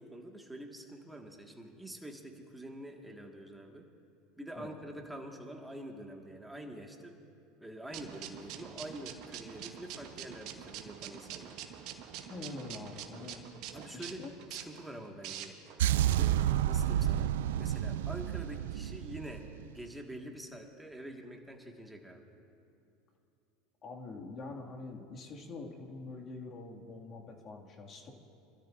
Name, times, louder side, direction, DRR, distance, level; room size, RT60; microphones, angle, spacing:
voice 1, 0.0-3.9 4.4-7.2 7.6-11.6 13.7-15.6 16.1-17.3 17.6-22.2, right 1 dB, 5° right, 2 dB, 1.8 m, -46 dB
sound 1, 7.9-15.8, right 9 dB, 60° right, 1.2 m, -46 dB
voice 2, 12.3-13.4 13.9-14.3 16.2-16.3 23.8-28.1, left 3 dB, 40° left, -1 dB, 2.2 m, -45 dB
sound 2, 15.8-19.9, right 11 dB, 80° right, 0.3 m, -30 dB
25.0 x 13.0 x 2.6 m, 2.8 s
hypercardioid pair, 95°, 0 cm